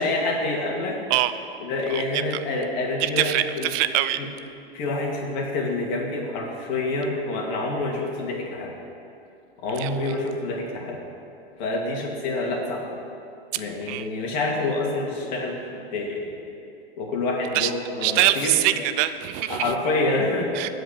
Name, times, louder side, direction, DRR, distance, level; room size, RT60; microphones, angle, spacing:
voice 1, 0.0-1.0 1.6-3.7 4.2-4.3 4.7-8.7 9.6-11.0 11.6-13.0 13.5-16.3 17.0-18.8 19.5-20.7, left 2 dB, 45° left, 0 dB, 2.7 m, -27 dB
voice 2, 1.9-2.2 3.0-4.2 9.8-9.9 13.9-14.1 17.5-17.7 18.0-19.7 20.5-20.7, right 14 dB, 40° right, 11 dB, 0.6 m, -23 dB
15.0 x 5.2 x 8.7 m, 2.6 s
figure-of-eight pair, 100°, 30 cm